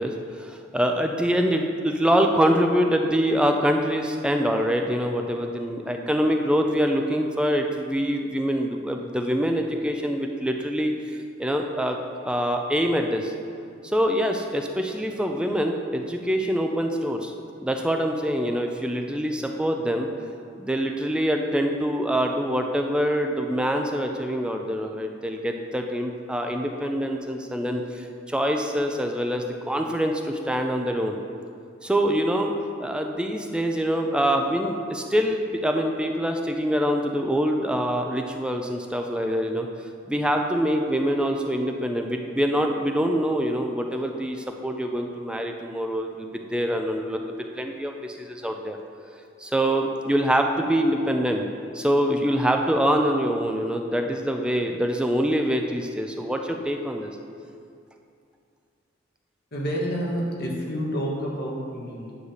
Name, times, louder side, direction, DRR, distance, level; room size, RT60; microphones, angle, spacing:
voice 1, 0.0-10.9 11.4-12.0 12.2-13.3 13.8-17.3 17.6-20.1 20.6-31.2 31.8-32.5 32.8-39.7 40.1-48.8 49.4-51.5 51.7-57.1, equal, 5° right, 3 dB, 0.4 m, -25 dB
voice 2, 59.5-62.2, equal, 55° left, -3 dB, 1.4 m, -29 dB
9.6 x 3.3 x 6.3 m, 2.4 s
head